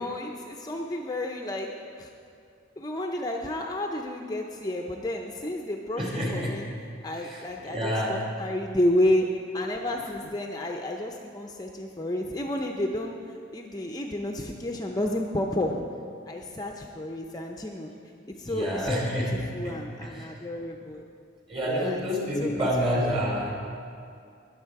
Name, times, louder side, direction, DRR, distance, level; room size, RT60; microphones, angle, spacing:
voice 1, 0.0-2.1 2.8-6.7 7.0-9.3 9.5-13.2 13.5-15.8 16.3-17.9 18.4-19.2 19.5-21.0 21.6-22.0 22.4-22.7, left 1 dB, 20° left, 1 dB, 0.6 m, -30 dB
voice 2, 6.0-6.6 7.2-8.2 18.5-19.8 20.2-20.3 21.5-23.5, equal, 30° right, -2 dB, 2.7 m, -28 dB
20.5 x 7.3 x 4.7 m, 2.4 s
head